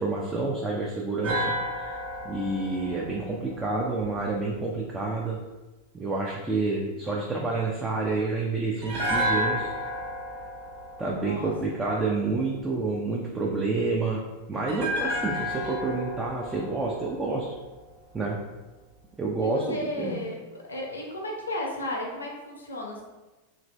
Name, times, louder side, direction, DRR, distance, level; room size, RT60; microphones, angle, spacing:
voice 1, 0.0-1.5 2.2-5.4 5.9-9.7 11.0-14.2 14.5-17.5 18.1-18.4 19.2-20.2, right 3 dB, 15° right, -3 dB, 0.4 m, -28 dB
sound 1, 1.2-4.4 8.8-12.0 14.7-17.9 18.2-18.3, equal, 50° right, 1.1 m, -32 dB
voice 2, 11.1-11.5 19.4-20.4 20.7-23.0, left 1 dB, 75° left, 0 dB, 0.6 m, -34 dB
2.9 x 2.6 x 3.1 m, 1.1 s
figure-of-eight pair, 90°, 0 cm